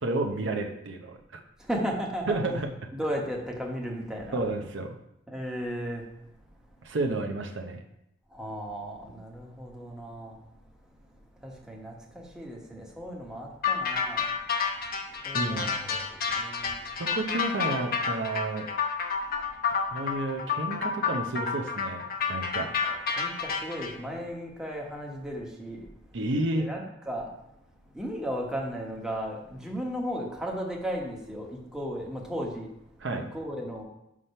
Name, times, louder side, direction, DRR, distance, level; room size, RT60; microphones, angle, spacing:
voice 1, 0.0-1.4 2.3-2.7 4.3-4.9 6.8-7.8 15.3-16.0 17.0-18.7 19.9-22.7 26.1-26.7 33.0-33.3, right 2 dB, 70° right, 3 dB, 0.8 m, -31 dB
voice 2, 1.6-2.5 2.9-4.4 5.3-6.0 8.3-10.4 11.4-14.3 15.2-16.8 22.9-25.9 26.6-27.3 27.9-32.7 33.1-33.8, equal, 5° right, -1 dB, 1.1 m, -35 dB
sound 1, 13.6-23.9, left 6 dB, 50° left, 0.8 m, -29 dB
5.8 x 4.9 x 5.5 m, 0.82 s
head